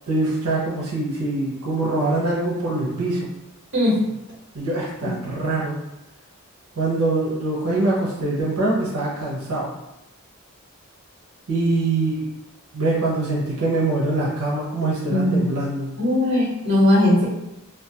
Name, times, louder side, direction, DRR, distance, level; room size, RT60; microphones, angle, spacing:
voice 1, 0.1-3.3 4.5-5.8 6.8-9.7 11.5-12.3 12.7-15.9, right 2 dB, 90° right, -5 dB, 0.6 m, -23 dB
voice 2, 15.1-15.5 16.0-17.2, left 1 dB, 55° right, -5 dB, 1.0 m, -18 dB
2.3 x 2.2 x 2.7 m, 0.90 s
head